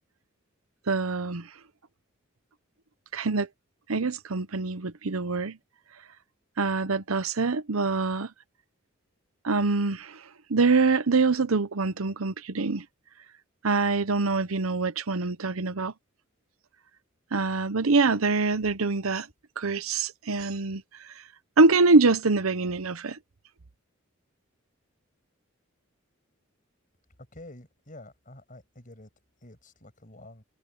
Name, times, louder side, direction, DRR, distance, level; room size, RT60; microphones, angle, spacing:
voice 1, 0.9-1.5 3.1-3.5 3.9-5.6 6.6-8.3 9.4-10.2 10.5-12.8 13.6-15.9 17.3-19.3 19.6-20.8 21.6-23.2, right 3 dB, 85° right, 0.9 m, -24 dB
voice 2, 27.3-29.1 29.4-30.4, left 1 dB, 40° left, 6.5 m, -48 dB
head